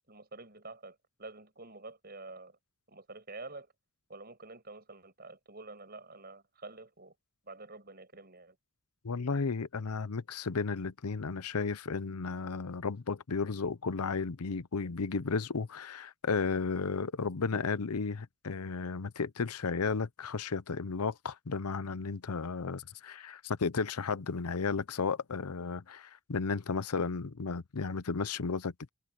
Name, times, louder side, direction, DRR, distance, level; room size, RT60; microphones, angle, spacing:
voice 1, 0.1-2.6 2.9-3.7 4.1-7.1 7.4-8.6, right 3 dB, 45° right, 6.9 m, -48 dB
voice 2, 9.0-28.9, left 4 dB, 90° left, 0.7 m, -34 dB
head